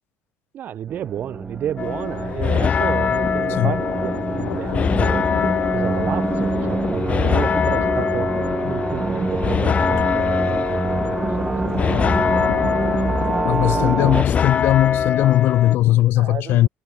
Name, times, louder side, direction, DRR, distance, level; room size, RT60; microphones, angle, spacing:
voice 1, 0.5-5.3 5.7-8.4 8.7-13.8 15.2-15.4 16.2-16.7, right 10 dB, 45° right, 4.0 m, -31 dB
sound 1, 0.9-14.2, right 3 dB, 15° right, 2.2 m, -25 dB
sound 2, 1.8-15.8, left 7 dB, 30° left, 1.1 m, -23 dB
Thunder, 2.8-16.0, left 21 dB, 75° left, 4.6 m, -34 dB
voice 2, 13.5-16.7, left 15 dB, 60° left, 0.5 m, -18 dB
cardioid pair, 130°, 4 cm